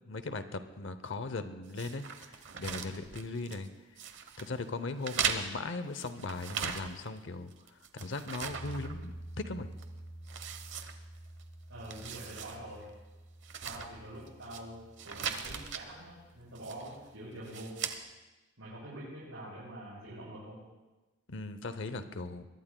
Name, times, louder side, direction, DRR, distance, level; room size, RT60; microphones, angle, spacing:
voice 1, 0.1-3.7 4.4-7.5 7.9-9.7 21.3-22.5, left 3 dB, 60° left, 10 dB, 0.7 m, -38 dB
sound 1, 1.7-3.7 4.0-4.5 5.0-7.2 7.5-9.4 9.8-9.9 10.3-11.4 11.8-12.6 12.9-13.0 13.4-14.6 15.0-15.8 16.5-17.0 17.4-18.0, right 7 dB, 60° right, 1.0 m, -39 dB
sound 2, 8.4-17.4, right 1 dB, 80° left, 6.1 m, -50 dB
voice 2, 11.7-12.9 13.6-17.7 18.6-20.6, right 1 dB, 80° right, -9 dB, 6.7 m, -45 dB
22.5 x 20.5 x 2.3 m, 1.1 s
head